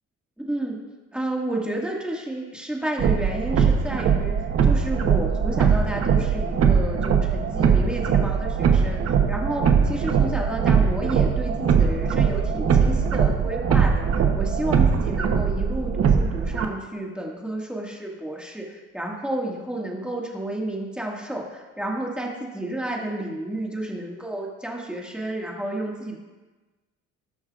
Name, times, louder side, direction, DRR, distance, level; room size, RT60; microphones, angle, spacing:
voice 1, 0.5-0.8 1.1-26.2, right 1 dB, 5° right, -2 dB, 1.9 m, -31 dB
sound 1, 3.0-16.7, right 6 dB, 50° right, 1.0 m, -21 dB
17.5 x 6.2 x 2.5 m, 1.2 s
cardioid pair, 100°, 31 cm